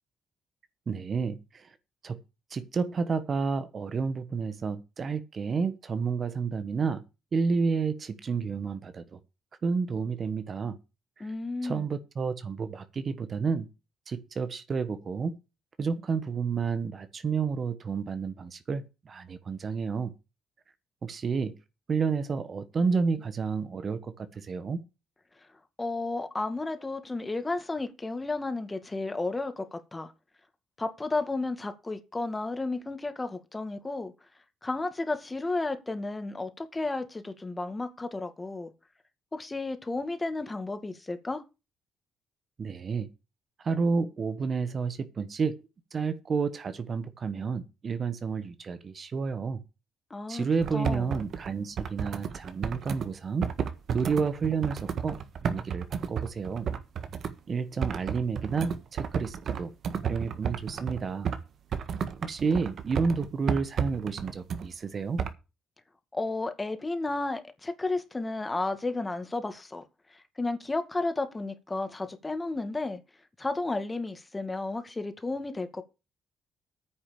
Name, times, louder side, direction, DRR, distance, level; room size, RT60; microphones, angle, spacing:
voice 1, 0.9-1.7 2.0-2.2 2.5-7.0 7.3-9.2 9.6-10.8 11.2-11.3 11.6-13.7 14.1-15.3 15.8-20.1 21.0-21.5 21.9-24.8 42.6-43.1 43.6-45.6 45.9-49.6 50.3-53.5 53.9-55.2 55.5-56.7 57.5-59.7 60.0-61.3 62.2-65.2, right 5 dB, 45° right, 1.3 m, -30 dB
voice 2, 11.2-11.9 25.8-30.1 30.8-34.1 34.6-38.7 39.3-41.4 50.1-50.5 50.7-51.1 66.1-69.8 70.1-73.0 73.4-75.8, left 2 dB, 20° left, 2.2 m, -32 dB
sound 1, 50.6-53.1 53.4-57.3 57.8-61.4 61.7-64.7 65.2-65.3, right 7 dB, 60° right, 1.6 m, -32 dB
9.6 x 6.3 x 8.6 m
cardioid pair, 90°, 0 cm